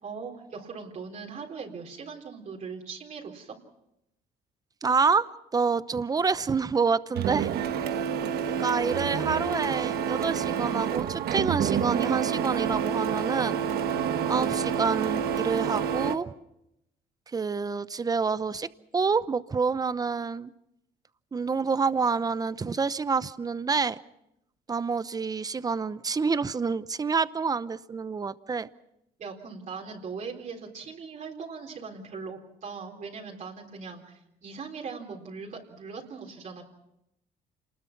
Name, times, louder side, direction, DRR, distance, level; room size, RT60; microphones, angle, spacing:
voice 1, 0.0-3.6 29.2-36.6, right 5 dB, 45° right, -1 dB, 3.9 m, -40 dB
voice 2, 4.8-5.3 5.5-7.5 8.6-13.6 14.3-16.3 17.3-18.7 18.9-20.5 21.3-24.0 24.7-28.7, right 5 dB, 20° right, 15 dB, 0.8 m, -27 dB
Printer, 7.1-16.1, right 8 dB, 70° right, 1.5 m, -28 dB
27.5 x 20.5 x 6.0 m, 0.83 s
cardioid pair, 110°, 17 cm